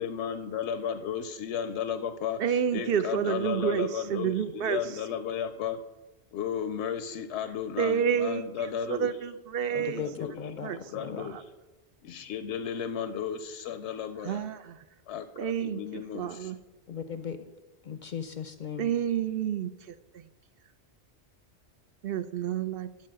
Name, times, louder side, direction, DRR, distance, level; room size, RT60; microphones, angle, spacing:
voice 1, 0.0-5.8 6.3-9.1 9.7-10.4 10.7-11.4 12.0-14.5 15.1-16.5, left 8 dB, 85° left, 10 dB, 0.9 m, -34 dB
voice 2, 2.4-4.8 7.8-8.4 8.9-10.0 10.6-10.8 11.2-11.4 14.2-14.8 15.4-16.6 18.8-19.7 22.0-22.9, right 8 dB, 65° right, 12 dB, 0.7 m, -29 dB
voice 3, 9.7-11.3 16.9-17.5 17.8-18.9, left 7 dB, 55° left, 9 dB, 0.6 m, -37 dB
10.5 x 4.7 x 7.5 m, 1.1 s
omnidirectional pair, 1.1 m